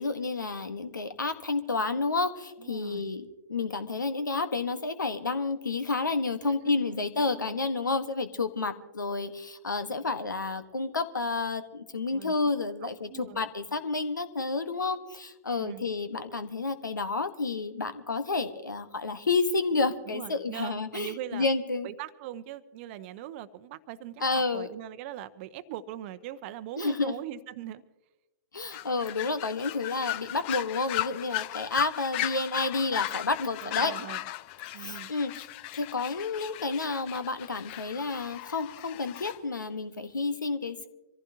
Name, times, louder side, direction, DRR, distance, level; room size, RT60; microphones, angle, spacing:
voice 1, 0.0-21.9 24.2-24.7 26.8-27.2 28.5-33.9 34.8-35.5 35.7-40.9, left 3 dB, 80° left, 1.3 m, -30 dB
voice 2, 2.6-3.1 6.4-7.6 12.1-12.3 12.8-13.5 15.6-15.9 20.1-21.5 21.8-27.8 33.6-34.3 34.7-35.1, right 12 dB, 40° right, 0.8 m, -41 dB
sound 1, 28.7-39.4, left 15 dB, 35° left, 0.5 m, -36 dB
26.0 x 15.0 x 2.8 m
figure-of-eight pair, 115°, 10 cm